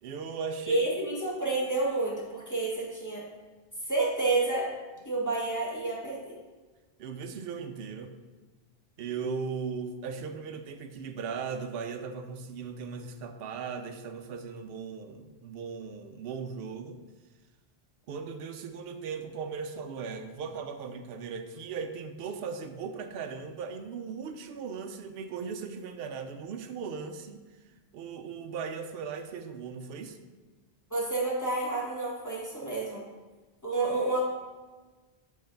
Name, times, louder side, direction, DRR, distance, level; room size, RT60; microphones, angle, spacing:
voice 1, 0.0-0.8 7.0-8.2 9.0-17.0 18.1-27.4 27.9-30.2, right 5 dB, 70° right, 6 dB, 0.8 m, -38 dB
voice 2, 0.7-3.2 3.9-4.7 5.0-6.4 30.9-33.0 33.6-34.2, right 2 dB, 15° left, -6 dB, 1.3 m, -29 dB
7.8 x 3.1 x 5.1 m, 1.3 s
omnidirectional pair, 1.1 m